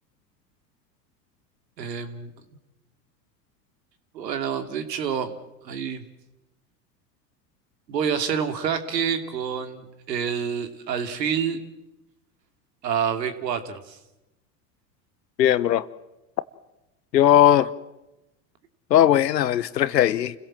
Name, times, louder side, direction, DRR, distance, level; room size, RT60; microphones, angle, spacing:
voice 1, 1.8-2.3 4.1-5.3 5.6-6.1 7.9-11.6 12.8-14.0, right 7 dB, 85° right, 8 dB, 2.7 m, -27 dB
voice 2, 15.4-15.8 17.1-17.7 18.9-20.3, left 11 dB, 90° left, 17 dB, 1.1 m, -18 dB
29.0 x 16.5 x 7.6 m, 0.97 s
hypercardioid pair, 95°, 49 cm